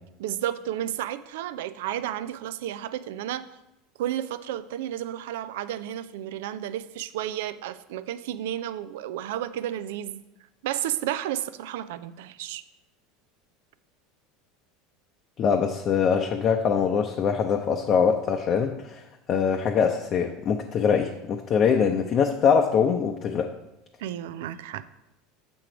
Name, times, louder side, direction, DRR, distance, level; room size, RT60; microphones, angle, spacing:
voice 1, 0.2-3.5 4.0-10.2 10.6-12.6 24.0-24.8, right 12 dB, 70° right, 13 dB, 0.3 m, -32 dB
voice 2, 15.4-19.0 19.3-23.5, left 6 dB, 45° left, 2 dB, 0.6 m, -23 dB
6.9 x 4.5 x 5.0 m, 0.92 s
hypercardioid pair, 85°, 0 cm